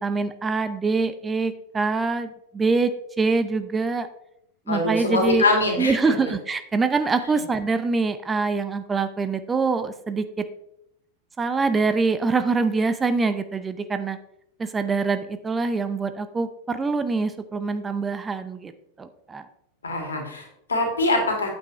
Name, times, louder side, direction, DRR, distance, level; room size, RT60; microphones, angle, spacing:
voice 1, 0.0-2.9 3.2-4.1 4.7-5.4 5.8-10.4 11.4-14.2 14.6-18.7 19.0-19.5, right 4 dB, 15° right, 11 dB, 0.6 m, -24 dB
voice 2, 4.7-6.1 19.8-21.5, left 2 dB, 70° left, 2 dB, 2.4 m, -23 dB
8.9 x 8.2 x 3.1 m, 0.77 s
figure-of-eight pair, 90°, 0 cm